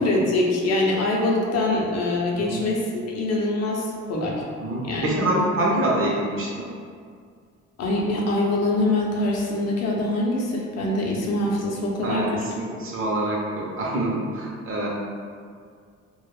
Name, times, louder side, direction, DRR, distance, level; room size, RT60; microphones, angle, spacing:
voice 1, 0.0-4.4 4.8-5.1 7.8-12.4, left 2 dB, 60° left, -2 dB, 0.6 m, -24 dB
voice 2, 4.6-6.7 12.0-12.3 12.6-14.9, right 1 dB, 45° right, -3 dB, 0.7 m, -25 dB
2.3 x 2.0 x 3.1 m, 2.1 s
cardioid pair, 90°, 30 cm